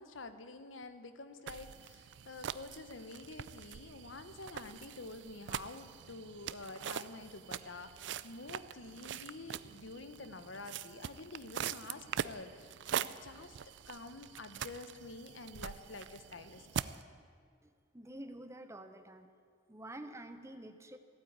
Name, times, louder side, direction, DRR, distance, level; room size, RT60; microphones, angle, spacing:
voice 1, 0.0-13.6 13.9-16.8, left 3 dB, 90° left, 10 dB, 1.0 m, -48 dB
sound 1, 1.5-17.0, right 8 dB, 65° right, 0.4 m, -43 dB
voice 2, 17.6-19.3 19.7-21.0, right 1 dB, 15° right, 8 dB, 0.8 m, -48 dB
15.0 x 9.3 x 8.8 m, 2.1 s
head